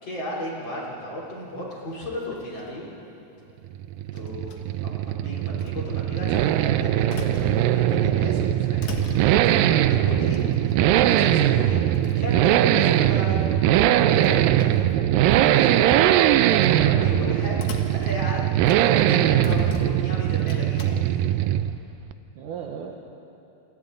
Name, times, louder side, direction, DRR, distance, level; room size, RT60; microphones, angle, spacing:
voice 1, 0.0-2.9 4.1-4.9 5.2-8.8 9.4-10.5 10.8-11.8 12.2-14.6 15.3-16.1 16.6-17.6 17.9-18.5 18.8-21.2, left 1 dB, 30° left, -5 dB, 3.6 m, -34 dB
sound 1, 1.8-2.8 4.2-4.9 5.6-5.8 6.6-8.1 8.4-9.7 10.3-11.0 11.7-11.8 11.9-12.3 13.9-15.5 16.0-16.3 17.5-19.1 19.4-20.9, left 5 dB, 60° left, 2.0 m, -40 dB
Accelerating revving vroom, 3.7-21.9 22.1-22.2, right 12 dB, 90° right, 1.9 m, -21 dB
voice 2, 22.4-23.0, right 8 dB, 70° right, 1 dB, 2.1 m, -40 dB
29.5 x 24.5 x 3.9 m, 2.7 s
omnidirectional pair, 4.7 m